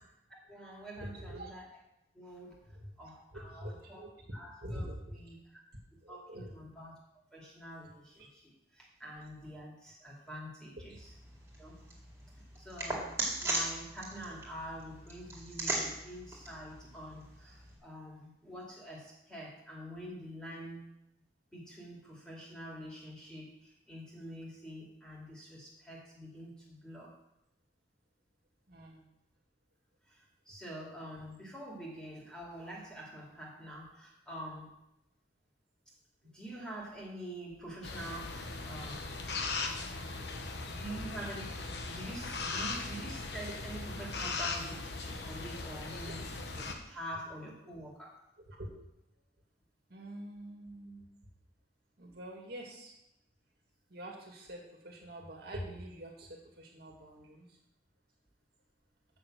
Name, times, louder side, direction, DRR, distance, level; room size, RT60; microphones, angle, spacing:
voice 1, 0.5-1.6 2.1-2.6 3.0-4.0 4.3-5.5 6.1-7.0 7.3-11.1 11.6-11.9 12.6-20.9 21.5-27.1 30.1-34.7 36.3-39.2 40.7-41.6 41.8-48.2, right 1 dB, 5° left, -4 dB, 2.4 m, -46 dB
voice 2, 1.1-1.5 2.7-2.9 3.3-4.2 4.6-5.2 6.0-6.5 8.2-8.3 10.8-10.9 28.7-29.0 40.2-40.5 40.9-41.0 46.0-46.1 48.5-48.7 49.9-51.0 52.0-52.9 53.9-57.5, right 1 dB, 55° right, -1 dB, 1.9 m, -45 dB
sound 1, 11.0-17.8, right 2 dB, 15° right, 2.4 m, -39 dB
sound 2, 37.8-46.7, left 3 dB, 65° left, 1.1 m, -39 dB
6.8 x 6.5 x 7.6 m, 0.84 s
head